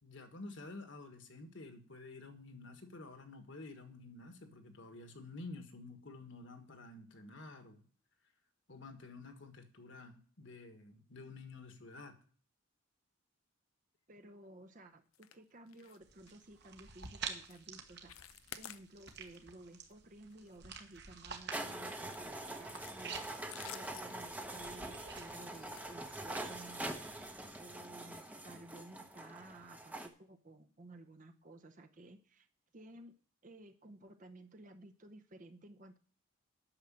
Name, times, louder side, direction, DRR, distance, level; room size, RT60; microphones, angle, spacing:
voice 1, 0.0-7.8 8.7-12.2, left 3 dB, 60° left, 7 dB, 1.6 m, -50 dB
voice 2, 14.1-23.2 23.6-27.0 27.6-32.5 32.7-33.1 33.4-36.0, right 1 dB, 35° right, 6 dB, 0.7 m, -55 dB
sound 1, 15.1-15.4 15.7-16.0 16.3-16.4 16.9-17.1 17.4-17.7 17.9-19.4 19.7-19.9 20.3-21.4 22.0-26.6 27.3-27.5 27.8-27.9 28.4-28.5, left 11 dB, 90° left, 0.6 m, -53 dB
sound 2, 16.0-27.5, right 6 dB, 50° right, 1.3 m, -50 dB
sound 3, 21.5-30.1, right 1 dB, 5° right, 0.8 m, -44 dB
8.9 x 6.5 x 7.5 m, 0.43 s
head